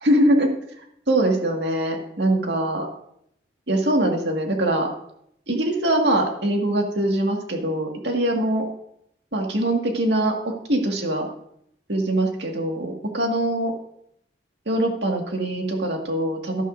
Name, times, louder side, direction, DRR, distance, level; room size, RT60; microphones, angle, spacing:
voice 1, 0.0-0.5 1.1-2.9 3.7-4.9 5.5-8.7 9.3-11.3 11.9-13.7 14.7-16.6, right 1 dB, 65° right, 2 dB, 1.9 m, -22 dB
13.0 x 11.5 x 2.6 m, 0.73 s
head